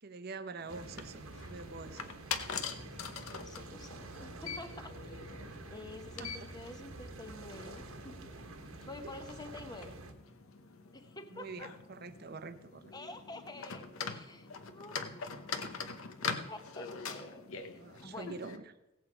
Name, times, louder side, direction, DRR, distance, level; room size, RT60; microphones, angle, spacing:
voice 1, 0.0-2.1 6.2-6.4 11.3-12.8 17.8-18.7, right 4 dB, 45° right, 11 dB, 0.7 m, -45 dB
sound 1, 0.6-18.6, left 5 dB, 75° left, 0.9 m, -44 dB
sound 2, 0.7-10.1, right 2 dB, 80° right, 1.3 m, -48 dB
voice 2, 3.3-5.1 5.7-8.3 8.9-9.9 10.9-11.7 12.9-15.8 16.5-18.3, left 2 dB, 20° left, 7 dB, 0.9 m, -49 dB
16.5 x 8.1 x 4.8 m, 0.96 s
head